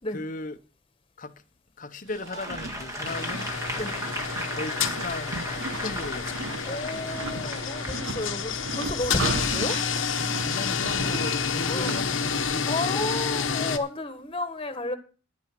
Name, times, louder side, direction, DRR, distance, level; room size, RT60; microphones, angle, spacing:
voice 1, 0.1-0.6 1.2-1.4 1.8-3.5 4.5-5.4 5.7-6.3 6.6-7.2 10.4-12.2 12.5-13.1, left 2 dB, 45° left, 0.9 m, -37 dB
sound 1, 2.1-12.6, right 3 dB, 70° right, 1.0 m, -37 dB
Applause / Crowd, 2.3-8.0 8.5-8.7, equal, 15° right, 1.6 m, -36 dB
sound 2, 3.0-13.8, left 6 dB, 80° left, 1.1 m, -29 dB
voice 2, 6.6-9.8 11.7-11.9 12.7-15.0, left 2 dB, 25° left, 1.6 m, -32 dB
11.0 x 9.0 x 5.9 m
head